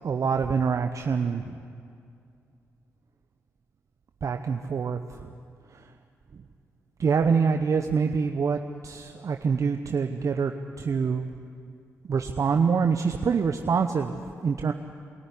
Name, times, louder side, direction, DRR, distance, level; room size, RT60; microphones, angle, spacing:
voice 1, 0.0-1.6 4.2-5.0 5.7-5.8 7.0-11.3 12.0-14.1 14.4-14.7, right 5 dB, 55° right, 6 dB, 0.9 m, -25 dB
23.0 x 14.0 x 9.9 m, 2.4 s
hypercardioid pair, 40°, 7 cm